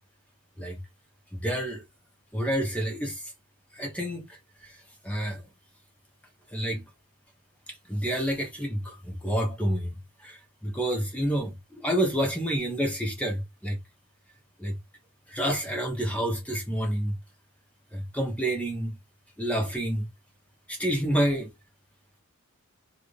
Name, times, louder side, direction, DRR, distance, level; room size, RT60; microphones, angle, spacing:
voice 1, 1.3-1.8 2.3-3.2 3.8-4.2 5.0-5.4 6.5-6.8 7.9-10.0 10.2-10.4 10.6-13.8 14.6-14.8 15.3-17.1 17.9-18.9 19.4-20.1 20.7-21.5, equal, 5° left, 1.0 m, -28 dB
3.1 x 2.7 x 3.2 m
head